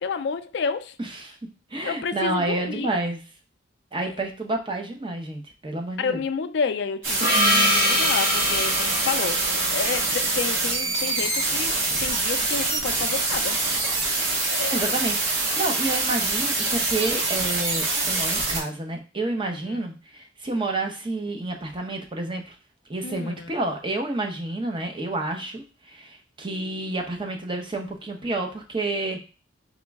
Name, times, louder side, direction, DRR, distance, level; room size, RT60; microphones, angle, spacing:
voice 1, 0.0-1.0 1.8-2.9 4.0-4.2 6.0-9.4 9.7-11.7 12.0-13.6 14.5-14.9 19.5-19.8 23.0-23.5, left 5 dB, 60° left, 0.4 m, -30 dB
voice 2, 1.0-1.4 1.7-3.2 3.9-6.2 14.3-22.5 22.9-29.2, right 2 dB, 25° right, 0.7 m, -29 dB
sound 1, 7.0-18.6, right 3 dB, 85° right, 1.1 m, -25 dB
Gong, 7.2-11.5, left 1 dB, 50° right, 1.7 m, -25 dB
3.8 x 3.1 x 3.5 m
head